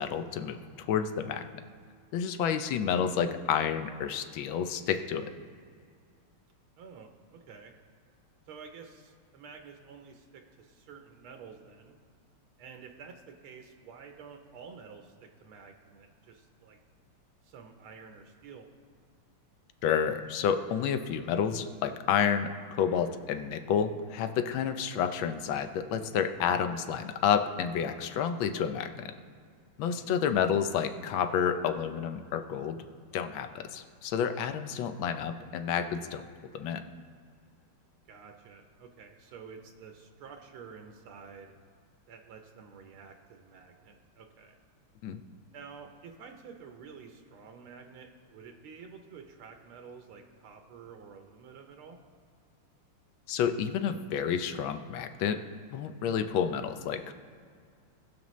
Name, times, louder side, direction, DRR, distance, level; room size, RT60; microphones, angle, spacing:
voice 1, 0.0-1.4 2.1-5.3 19.8-29.1 29.8-32.8 33.1-36.2 36.5-36.8 45.0-45.2 53.3-55.4 55.7-57.1, left 7 dB, 70° left, 9 dB, 1.3 m, -30 dB
voice 2, 6.8-7.7 8.5-12.0 12.6-16.8 17.4-18.7 29.8-30.1 38.1-41.5 42.1-44.6 45.5-52.0, right 6 dB, 75° right, 4 dB, 1.6 m, -50 dB
20.0 x 6.8 x 3.1 m, 2.2 s
omnidirectional pair, 2.4 m